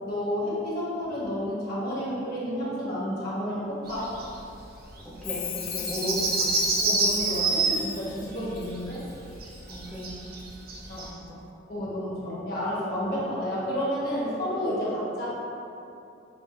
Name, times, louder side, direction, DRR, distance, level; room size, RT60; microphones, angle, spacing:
voice 1, 0.0-4.1 6.8-9.0 10.9-11.1 11.7-15.3, equal, 55° left, -7 dB, 1.2 m, -30 dB
sound 1, 3.9-4.4 4.7-4.8 4.9-5.0 5.3-11.1, right 3 dB, 50° right, 0.6 m, -27 dB
voice 2, 5.0-6.6 9.7-10.3 11.0-11.4, left 1 dB, 5° left, -9 dB, 0.6 m, -35 dB
Chime, 5.2-9.1 9.5-10.1 10.4-10.5, left 9 dB, 90° left, 0.4 m, -38 dB
7.0 x 2.5 x 2.5 m, 2.7 s
head